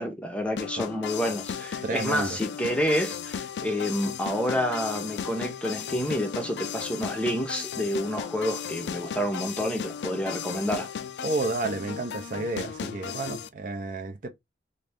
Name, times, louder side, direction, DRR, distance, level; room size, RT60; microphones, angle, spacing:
voice 1, 0.0-10.9, equal, 5° left, 0.6 m, -29 dB
sound 1, 0.6-13.5, left 7 dB, 75° left, 0.4 m, -35 dB
voice 2, 1.8-2.4 11.2-14.3, right 3 dB, 50° right, 0.5 m, -31 dB
3.1 x 2.6 x 3.4 m
head